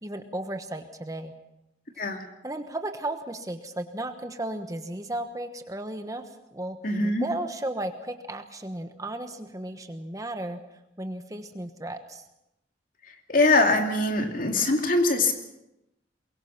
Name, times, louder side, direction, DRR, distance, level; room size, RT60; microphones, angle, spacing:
voice 1, 0.0-1.3 2.4-6.8 7.2-10.6 11.0-12.2, right 1 dB, 20° right, 7 dB, 1.3 m, -34 dB
voice 2, 6.8-7.3 13.0-15.3, left 2 dB, 50° left, 4 dB, 2.6 m, -23 dB
23.0 x 22.5 x 6.0 m, 0.87 s
head